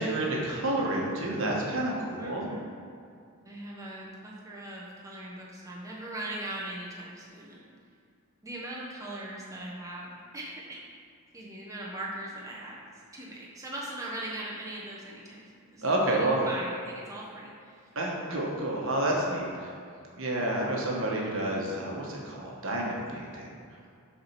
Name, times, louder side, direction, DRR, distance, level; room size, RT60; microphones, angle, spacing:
voice 1, 0.0-2.5 15.8-16.4 17.9-19.7 20.2-23.5, right 1 dB, 60° right, -2 dB, 1.3 m, -29 dB
voice 2, 2.2-2.8 3.4-7.7 8.4-10.8 11.3-17.9, right 1 dB, 15° right, -5 dB, 1.0 m, -40 dB
7.4 x 4.3 x 5.9 m, 2.4 s
head